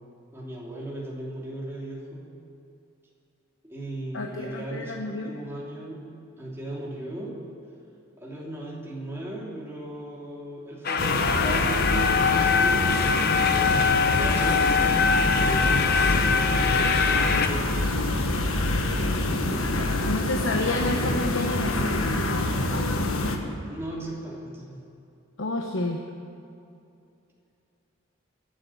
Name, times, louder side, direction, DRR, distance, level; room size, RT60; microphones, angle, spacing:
voice 1, 0.0-2.3 3.6-6.1 6.4-7.4 8.2-17.9 18.9-19.7 23.6-24.8, right 1 dB, 10° right, -4 dB, 2.9 m, -37 dB
voice 2, 4.1-5.3 20.1-22.0 25.4-26.0, left 2 dB, 70° left, 2 dB, 1.0 m, -29 dB
sound 1, 10.8-17.5, left 5 dB, 45° left, 0.9 m, -23 dB
sound 2, 11.0-23.4, left 2 dB, 90° left, 1.4 m, -26 dB
23.0 x 7.7 x 7.1 m, 2.6 s
head